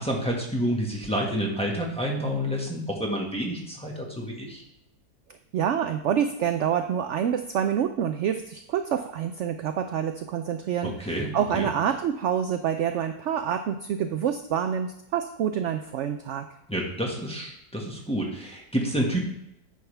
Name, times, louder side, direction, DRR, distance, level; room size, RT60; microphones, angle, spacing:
voice 1, 0.0-4.6 10.8-11.7 16.7-19.2, equal, 5° left, -2 dB, 1.4 m, -29 dB
voice 2, 5.5-16.5, right 9 dB, 70° right, 7 dB, 0.7 m, -27 dB
9.4 x 6.4 x 3.4 m, 0.79 s
omnidirectional pair, 1.6 m